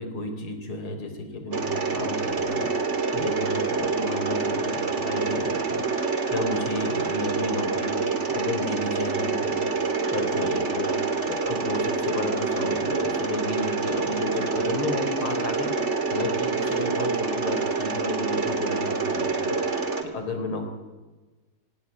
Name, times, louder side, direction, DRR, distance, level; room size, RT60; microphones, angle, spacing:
voice 1, 0.0-9.6 10.1-20.6, left 2 dB, 85° left, 6 dB, 4.7 m, -33 dB
Mechanisms, 1.5-20.0, right 4 dB, 35° right, 2.3 m, -27 dB
25.5 x 18.5 x 9.7 m, 1.2 s
omnidirectional pair, 2.3 m